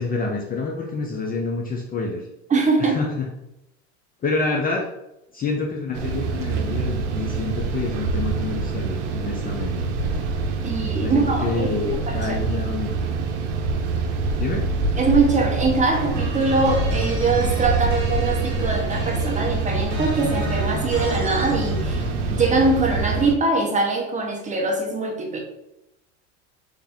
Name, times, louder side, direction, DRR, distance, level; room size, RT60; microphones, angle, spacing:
voice 1, 0.0-2.2 2.8-3.3 4.2-4.9 5.3-9.7 11.0-12.9 14.4-14.7, left 3 dB, 25° left, 1 dB, 0.5 m, -27 dB
voice 2, 2.5-3.0 10.6-11.7 12.1-12.4 15.0-22.1 22.3-25.4, right 3 dB, 20° right, 1 dB, 0.7 m, -22 dB
sound 1, 5.9-23.3, right 4 dB, 75° right, 0.7 m, -25 dB
sound 2, 15.9-22.6, left 1 dB, 50° right, 1.3 m, -31 dB
3.5 x 2.6 x 3.5 m, 0.88 s
supercardioid pair, 110°, 36 cm